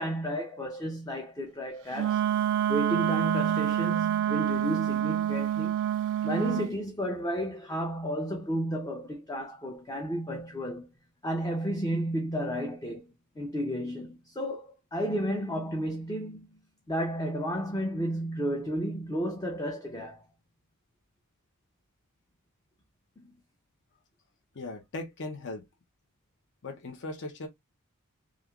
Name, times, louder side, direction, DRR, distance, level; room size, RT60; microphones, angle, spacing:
voice 1, 0.0-2.2 2.7-5.8 6.2-10.9 11.2-13.0 13.4-16.5 16.9-20.2 23.2-23.3, equal, 15° left, 0.5 m, -32 dB
Wind instrument woodwind instrument, 1.9-6.7, right 11 dB, 55° right, 0.3 m, -27 dB
voice 2, 24.5-25.7 26.6-27.5, left 2 dB, 55° left, 0.7 m, -38 dB
3.2 x 2.4 x 2.3 m
head